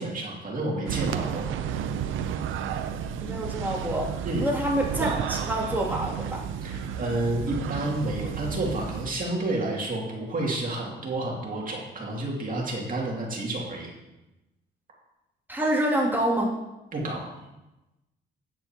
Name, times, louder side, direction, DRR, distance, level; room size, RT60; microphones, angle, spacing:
voice 1, 0.0-1.5 4.2-4.5 6.6-13.9 16.9-17.3, right 2 dB, 45° right, -2 dB, 2.5 m, -30 dB
sound 1, 0.9-9.1, right 8 dB, 85° right, 0.6 m, -32 dB
voice 2, 3.2-4.1 4.4-6.4 15.5-16.5, right 1 dB, 10° right, -4 dB, 2.6 m, -26 dB
10.0 x 9.5 x 2.9 m, 0.98 s
cardioid pair, 90°, 20 cm